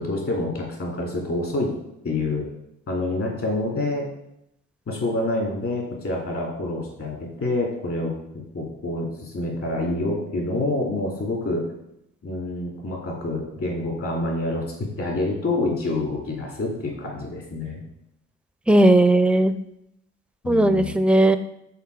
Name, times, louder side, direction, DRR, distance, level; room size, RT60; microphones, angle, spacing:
voice 1, 0.0-1.7 2.0-2.4 2.9-4.1 4.9-11.6 12.2-17.8 20.4-21.0, left 2 dB, 50° left, -1 dB, 2.6 m, -27 dB
voice 2, 18.7-19.5 20.5-21.4, right 1 dB, 5° right, 11 dB, 0.4 m, -17 dB
5.7 x 4.4 x 4.7 m, 0.80 s
cardioid pair, 80°, 29 cm